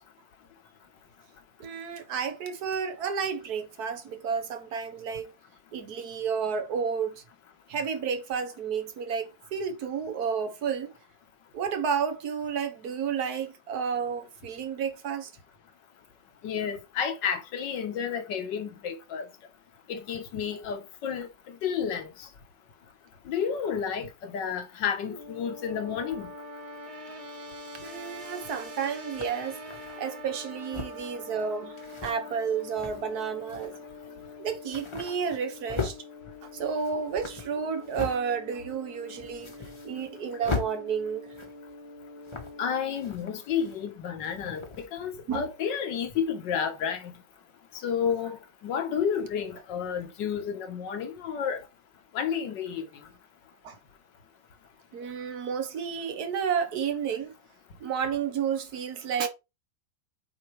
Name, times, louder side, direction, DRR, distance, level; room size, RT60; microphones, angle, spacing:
voice 1, 1.6-5.3 5.7-7.2 7.7-10.9 11.5-15.3 27.8-29.6 30.0-31.8 32.0-33.7 34.4-36.0 36.4-39.5 39.8-41.3 45.3-45.5 53.6-53.8 54.9-57.3 57.8-59.3, right 6 dB, 60° right, 1.4 m, -31 dB
voice 2, 16.4-19.3 19.9-22.3 23.3-26.3 42.6-47.2 47.8-48.4 48.6-51.6 52.1-52.8, left 7 dB, 75° left, 1.7 m, -31 dB
sound 1, 25.0-42.7, left 2 dB, 25° right, 0.9 m, -44 dB
sound 2, 28.2-28.3 29.1-30.0 30.6-31.1 31.8-32.1 32.6-33.1 33.5-33.7 34.1-34.2 34.5-36.0 36.5-38.2 38.6-38.7 39.1-40.2 40.4-40.7 41.3-41.7 42.2-42.7 42.9-43.9 44.2-44.9, left 4 dB, 20° left, 0.8 m, -38 dB
8.1 x 4.3 x 3.2 m
omnidirectional pair, 2.0 m